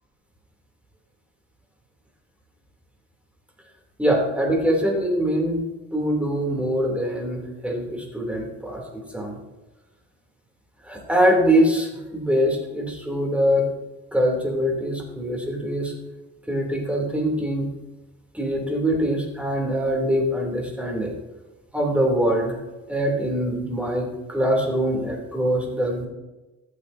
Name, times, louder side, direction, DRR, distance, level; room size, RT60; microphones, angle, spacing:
voice 1, 4.0-5.6 5.9-9.4 10.8-13.7 14.1-15.9 16.5-17.7 18.3-21.1 21.7-22.6 22.9-26.1, equal, 5° right, -1 dB, 2.9 m, -23 dB
14.0 x 7.8 x 2.7 m, 1.1 s
cardioid pair, 90°, 30 cm